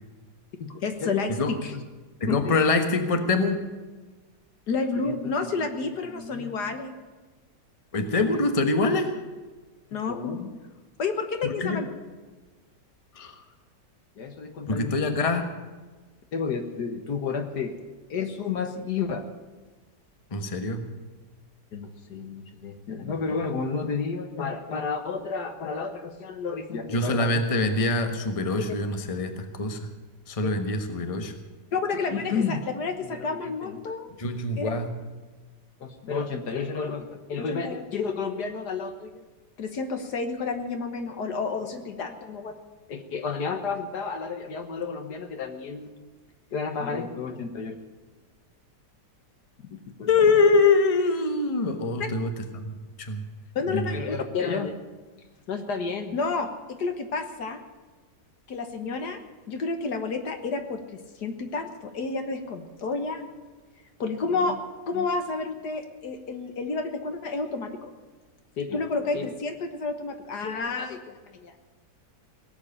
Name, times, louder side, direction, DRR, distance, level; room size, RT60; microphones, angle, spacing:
voice 1, 0.6-1.8 2.3-2.5 4.7-7.0 8.3-8.5 9.9-10.6 11.0-11.9 14.2-15.2 16.3-17.7 18.1-19.2 21.7-27.3 30.4-30.6 31.7-34.1 34.6-34.7 35.8-39.2 39.6-42.6 42.9-46.0 46.5-47.8 50.0-50.1 52.0-52.1 53.6-54.8 55.5-57.6 58.5-59.2 59.5-63.3 64.0-64.6 64.9-67.9 68.6-71.5, left 4 dB, 65° left, 7 dB, 1.8 m, -30 dB
voice 2, 2.2-3.6 7.9-9.1 11.4-11.8 13.1-13.3 14.7-15.4 20.3-20.8 26.9-29.9 30.3-31.3 34.2-34.9 50.1-53.2 53.7-54.0, left 3 dB, 20° left, 6 dB, 1.2 m, -24 dB
18.0 x 8.1 x 10.0 m, 1.3 s
omnidirectional pair, 1.9 m